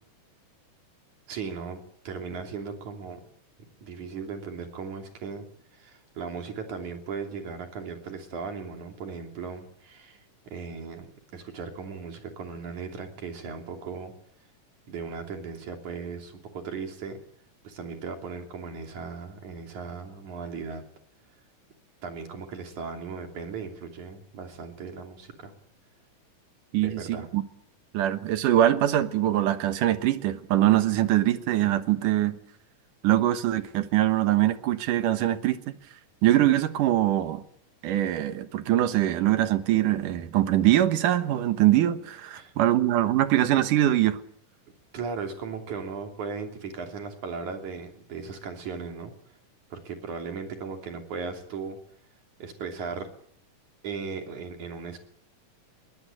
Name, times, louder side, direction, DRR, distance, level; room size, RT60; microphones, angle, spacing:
voice 1, 1.3-1.8 2.0-3.2 3.8-5.5 5.7-14.1 14.9-17.2 17.6-20.8 22.0-25.5 26.8-27.3 42.3-42.5 44.9-49.1 49.7-51.8 52.4-53.1 53.8-55.0, right 5 dB, 70° right, 4.4 m, -37 dB
voice 2, 26.7-27.4 27.9-32.4 33.0-35.6 36.2-37.4 37.8-44.2, right 13 dB, 85° right, 2.9 m, -23 dB
22.0 x 19.5 x 9.1 m
omnidirectional pair, 3.6 m